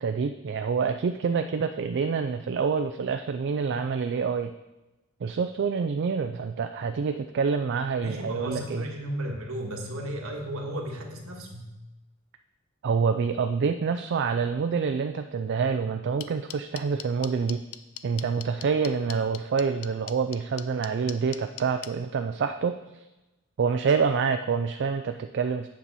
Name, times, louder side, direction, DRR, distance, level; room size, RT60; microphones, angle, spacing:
voice 1, 0.0-4.5 5.2-8.8 12.8-17.6 18.0-23.0 23.6-25.7, right 5 dB, 55° right, 7 dB, 0.4 m, -27 dB
voice 2, 8.0-11.7, equal, 70° right, 1 dB, 1.5 m, -34 dB
sound 1, 16.2-21.9, left 13 dB, 75° left, 0.5 m, -38 dB
8.6 x 7.1 x 4.1 m, 1.0 s
head